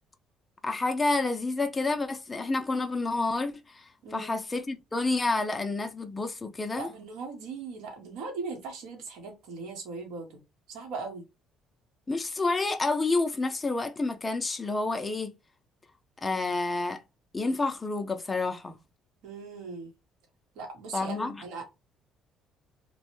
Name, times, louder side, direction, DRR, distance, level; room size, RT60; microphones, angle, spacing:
voice 1, 0.6-6.9 12.1-15.3 16.2-17.0 17.3-18.8 20.9-21.4, left 3 dB, 15° left, 0.3 m, -29 dB
voice 2, 6.7-10.4 10.7-11.2 19.2-19.9 20.5-21.6, right 4 dB, 85° right, 1.0 m, -39 dB
3.0 x 2.1 x 2.9 m
cardioid pair, 135°, 0 cm